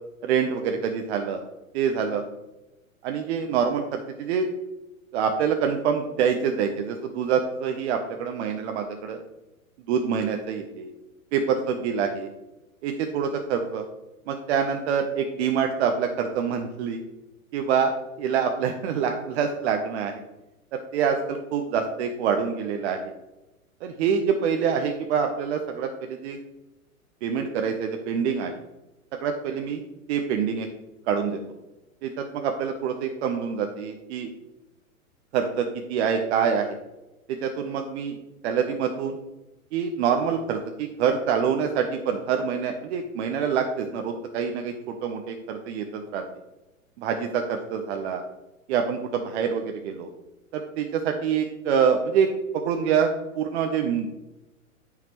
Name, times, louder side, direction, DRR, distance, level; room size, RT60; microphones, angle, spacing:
voice 1, 0.2-1.4 1.7-2.3 3.0-4.5 5.1-9.2 9.9-10.9 11.3-12.3 12.8-13.8 14.3-17.0 17.5-17.9 18.2-20.2 20.7-23.1 23.8-26.4 27.2-28.5 29.2-29.8 30.1-30.7 31.1-31.4 32.0-34.3 35.3-36.8 37.4-38.2 38.4-39.2 39.7-46.2 47.0-48.2 48.7-50.1 50.5-52.3 52.5-53.1 53.3-54.1, right 7 dB, 50° right, 4 dB, 1.0 m, -26 dB
12.5 x 5.9 x 3.2 m, 1.0 s
hypercardioid pair, 110°, 42 cm